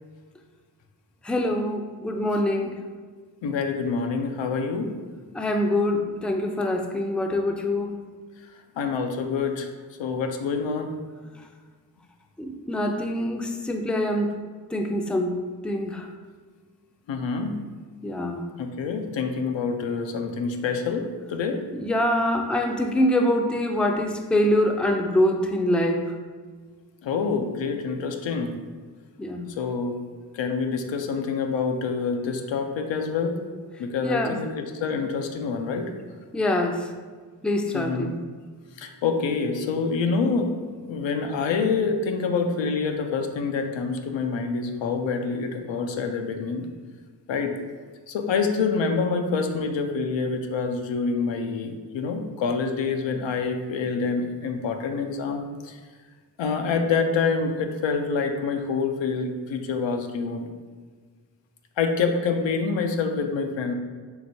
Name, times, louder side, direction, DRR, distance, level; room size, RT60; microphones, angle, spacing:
voice 1, 1.2-2.8 5.3-8.0 12.4-14.3 14.7-15.4 15.6-16.1 18.0-18.5 21.7-26.2 29.2-29.6 34.0-34.4 36.3-36.9 37.4-38.1, left 1 dB, ahead, 3 dB, 0.4 m, -24 dB
voice 2, 3.4-5.0 8.8-9.7 10.0-10.9 17.1-17.6 18.6-21.6 27.0-28.6 29.6-30.0 30.3-33.4 33.8-35.9 37.7-38.2 38.8-40.5 40.8-46.7 47.3-47.6 48.1-55.8 56.4-60.5 61.8-63.7, left 5 dB, 85° left, 4 dB, 0.5 m, -26 dB
4.7 x 3.4 x 2.6 m, 1.5 s
cardioid pair, 40°, 44 cm